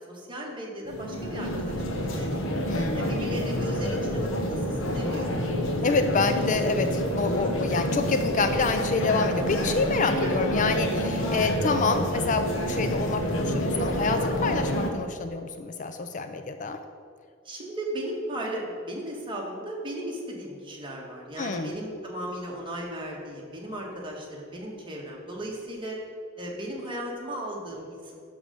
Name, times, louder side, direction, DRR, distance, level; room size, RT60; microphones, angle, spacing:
voice 1, 0.0-2.5 2.9-5.4 10.2-10.5 17.4-26.0 26.4-28.1, right 1 dB, 25° right, -2 dB, 1.7 m, -36 dB
sound 1, 0.8-14.9, equal, 85° left, 1.2 m, -28 dB
voice 2, 2.7-3.2 5.8-16.8 21.4-21.8, left 4 dB, 40° left, 8 dB, 0.5 m, -27 dB
11.0 x 3.8 x 6.8 m, 2.2 s
head